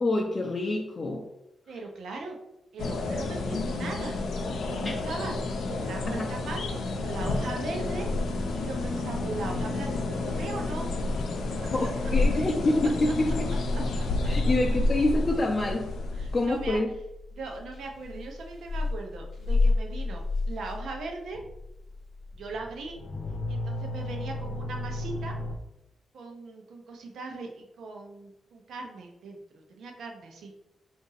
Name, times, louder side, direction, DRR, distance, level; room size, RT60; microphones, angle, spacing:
voice 1, 0.0-1.3 4.8-5.0 6.2-6.3 11.7-13.5 14.3-15.9 16.3-16.9, left 2 dB, 30° left, 0 dB, 0.4 m, -26 dB
voice 2, 1.7-2.4 2.7-4.2 4.4-5.3 5.6-8.1 8.5-10.9 11.8-11.9 14.2-14.3 16.1-16.8 17.3-21.4 22.3-23.0 23.5-25.4 26.1-30.5, right 3 dB, 85° right, 2 dB, 0.7 m, -39 dB
sound 1, 2.8-16.8, left 2 dB, 90° left, 0.5 m, -30 dB
sound 2, 14.2-25.6, left 2 dB, 50° left, 0.8 m, -32 dB
3.9 x 2.6 x 3.9 m, 0.86 s
wide cardioid pair, 140°, 0 cm